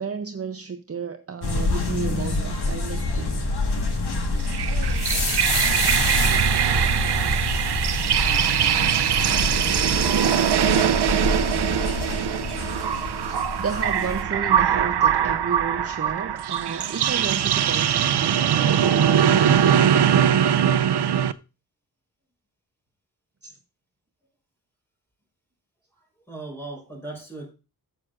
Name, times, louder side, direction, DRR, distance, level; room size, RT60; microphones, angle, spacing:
voice 1, 0.0-3.4 13.5-20.4 23.4-23.6, right 5 dB, 35° right, 7 dB, 0.7 m, -32 dB
sound 1, 1.4-14.2, left 2 dB, 75° left, 1.7 m, -27 dB
sound 2, 4.4-21.3, right 9 dB, 85° right, 0.6 m, -21 dB
voice 2, 9.3-10.2 10.6-11.3 26.0-27.5, right 3 dB, 5° left, -1 dB, 4.4 m, -39 dB
12.5 x 7.8 x 2.5 m, 0.30 s
wide cardioid pair, 135°, 39 cm